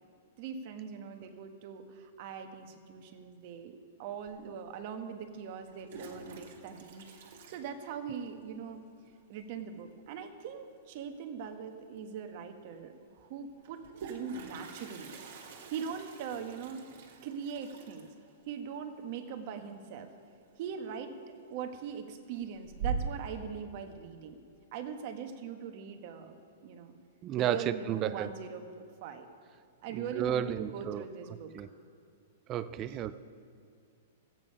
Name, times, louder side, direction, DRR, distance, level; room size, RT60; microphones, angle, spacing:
voice 1, 0.4-7.1 7.5-8.8 9.3-13.8 14.1-15.2 15.7-16.9 17.2-18.1 18.5-20.1 20.6-21.2 21.5-24.4 24.7-26.4 26.6-26.9 27.3-29.3 29.8-31.5 32.8-33.0, right 7 dB, 45° right, 6 dB, 1.2 m, -41 dB
Toilet flush, 4.3-4.4 5.5-8.4 8.6-8.7 9.0-9.1 9.4-9.8 11.5-11.6 11.9-12.0 13.6-20.3 20.6-21.0 21.4-22.0 22.4-23.4, right 5 dB, 65° right, 2.0 m, -43 dB
voice 2, 27.2-28.3 29.9-31.0 31.5-31.7 32.5-33.2, right 10 dB, 25° right, 13 dB, 0.4 m, -32 dB
14.0 x 9.0 x 5.4 m, 2.4 s
hypercardioid pair, 150°, 0 cm